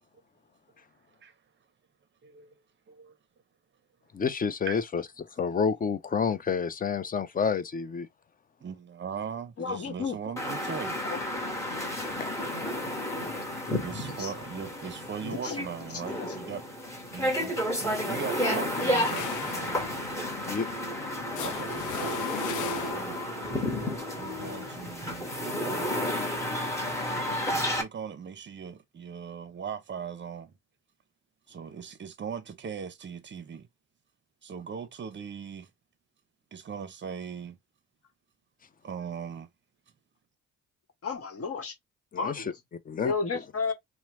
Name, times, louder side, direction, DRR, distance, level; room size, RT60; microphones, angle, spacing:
voice 1, 2.2-2.5 2.9-3.2 4.7-4.8 8.6-11.0 13.8-16.7 17.1-17.5 17.8-19.9 21.4-22.2 22.5-23.3 24.1-25.9 27.5-30.5 31.5-33.7 34.4-35.7 36.5-37.6 38.8-39.5, right 7 dB, 40° right, 0.6 m, -39 dB
voice 2, 4.1-5.0 5.4-8.1 12.2-12.3 20.5-20.7 42.1-42.5 42.9-43.1, left 6 dB, 30° left, 0.5 m, -29 dB
voice 3, 9.6-10.2 13.2-13.3 13.7-13.8 14.2-14.3 15.2-15.6 41.0-41.7 42.2-42.5 43.0-43.7, left 4 dB, 50° left, 1.1 m, -32 dB
sound 1, 10.4-27.8, left 1 dB, 10° left, 1.1 m, -32 dB
sound 2, 18.7-23.3, left 10 dB, 80° left, 0.5 m, -38 dB
2.9 x 2.1 x 3.0 m
cardioid pair, 90°, 30 cm